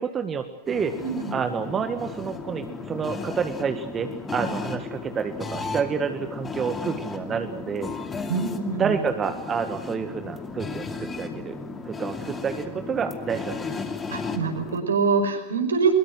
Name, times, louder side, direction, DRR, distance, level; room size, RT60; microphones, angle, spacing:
voice 1, 0.0-0.9 1.3-7.9 8.8-11.5 11.8-13.5, right 6 dB, 20° right, 7 dB, 1.7 m, -29 dB
sound 1, 0.7-14.8, left 4 dB, 15° left, 2.6 m, -35 dB
voice 2, 0.9-1.3 8.3-9.0 14.1-15.9, right 4 dB, 70° right, 6 dB, 5.4 m, -25 dB
23.0 x 22.5 x 7.9 m, 0.87 s
figure-of-eight pair, 90°, 0 cm